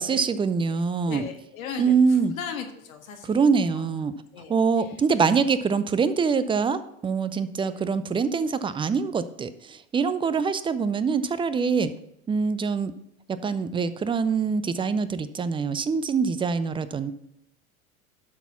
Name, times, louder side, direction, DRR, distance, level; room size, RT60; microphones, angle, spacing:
voice 1, 0.0-1.3 1.8-2.3 3.2-4.1 4.5-11.9 12.3-12.9 13.4-17.1, right 5 dB, 15° right, 13 dB, 0.4 m, -24 dB
voice 2, 1.0-3.9 4.3-4.5, left 7 dB, 75° left, 5 dB, 1.5 m, -37 dB
11.5 x 4.1 x 5.7 m, 0.81 s
hypercardioid pair, 85°, 41 cm